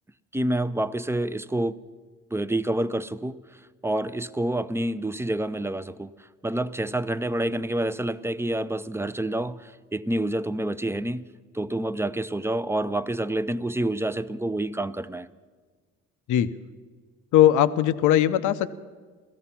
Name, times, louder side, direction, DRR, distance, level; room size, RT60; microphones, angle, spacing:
voice 1, 0.3-1.8 2.3-11.3 11.5-15.3, right 1 dB, 10° right, 0.5 m, -28 dB
voice 2, 17.3-18.7, left 12 dB, 80° left, 0.7 m, -19 dB
17.0 x 14.0 x 5.8 m
cardioid pair, 90°, 30 cm